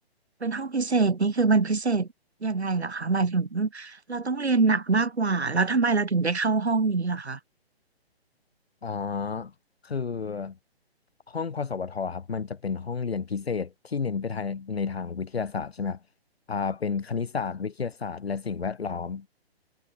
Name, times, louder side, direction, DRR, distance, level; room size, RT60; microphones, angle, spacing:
voice 1, 0.4-2.1 2.4-7.4, right 4 dB, 90° right, 1.8 m, -24 dB
voice 2, 8.8-9.5 9.8-10.6 11.3-16.0 16.5-19.3, left 5 dB, 70° left, 2.9 m, -31 dB
figure-of-eight pair, 135°, 32 cm